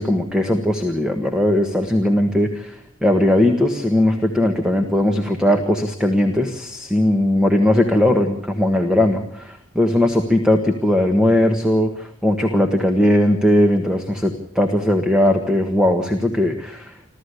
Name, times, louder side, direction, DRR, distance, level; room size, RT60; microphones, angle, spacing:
voice 1, 0.0-16.9, left 1 dB, 5° right, 4 dB, 1.5 m, -18 dB
28.0 x 13.5 x 8.3 m, 0.69 s
head